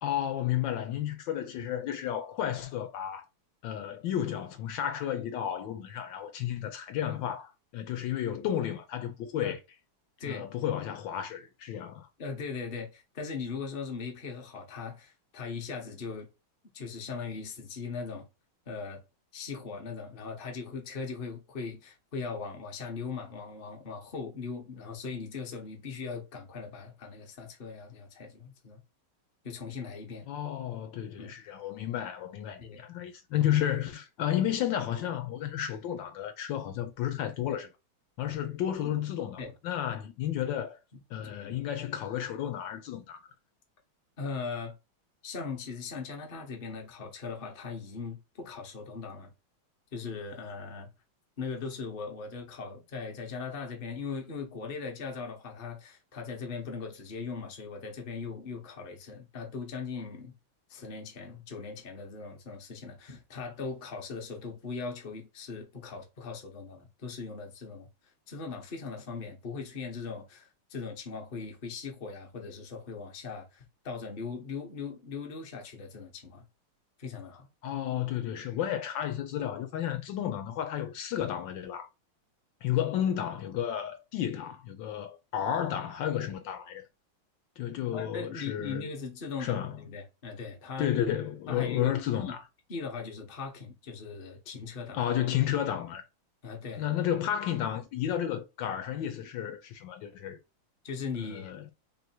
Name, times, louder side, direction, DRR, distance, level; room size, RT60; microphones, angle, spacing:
voice 1, 0.0-3.2 3.6-9.6 10.2-12.1 30.3-37.7 38.2-40.8 41.1-43.3 77.6-81.9 82.6-86.8 87.6-88.9 89.4-89.8 90.8-92.4 94.9-96.0 96.8-100.4 101.2-101.7, left 10 dB, 75° left, 1.2 m, -32 dB
voice 2, 12.2-16.3 16.7-18.3 18.7-19.0 19.3-28.8 29.4-30.3 31.2-31.3 32.6-32.8 38.8-38.9 39.4-39.5 41.2-41.6 44.2-44.8 45.2-49.3 49.9-50.9 51.4-60.4 60.7-67.9 68.3-76.4 77.0-77.5 87.9-90.9 91.5-91.9 92.2-92.3 92.7-95.0 96.4-96.8 100.8-101.5, left 5 dB, 40° left, 0.8 m, -39 dB
3.2 x 2.7 x 4.3 m
omnidirectional pair, 2.2 m